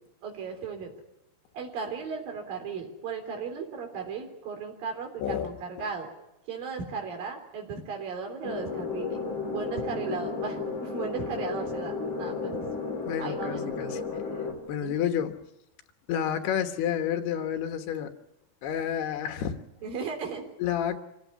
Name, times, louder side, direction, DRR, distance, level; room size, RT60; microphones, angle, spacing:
voice 1, 0.2-0.9 1.5-6.1 6.5-9.2 9.5-12.7 13.2-13.7 14.8-15.0 19.8-20.5, right 5 dB, 65° right, 3 dB, 5.2 m, -36 dB
voice 2, 5.2-5.9 13.1-14.0 14.5-15.4 16.1-18.1 18.6-19.6 20.6-21.0, left 9 dB, 85° left, 7 dB, 3.5 m, -30 dB
sound 1, 8.4-14.5, left 4 dB, 30° left, 3.8 m, -33 dB
26.0 x 15.5 x 9.7 m, 0.90 s
omnidirectional pair, 4.5 m